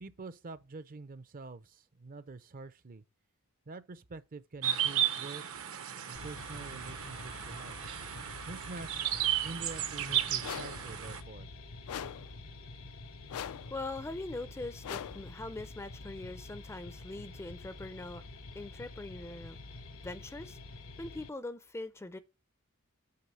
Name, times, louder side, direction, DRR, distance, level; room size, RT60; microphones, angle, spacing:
voice 1, 0.0-3.0 3.7-5.6 6.1-7.8 8.5-9.1 9.4-11.5, right 3 dB, 40° right, 0.5 m, -46 dB
sound 1, 4.6-11.2, right 10 dB, 70° right, 0.8 m, -34 dB
sound 2, 6.1-21.3, left 2 dB, 70° left, 1.0 m, -48 dB
sound 3, 10.4-10.9 11.9-12.4 13.3-13.8 14.8-15.3, left 9 dB, 90° left, 0.4 m, -41 dB
voice 2, 13.7-18.2 18.6-19.6 20.0-20.6 21.0-22.2, left 2 dB, 10° left, 0.4 m, -42 dB
8.6 x 3.5 x 6.2 m
head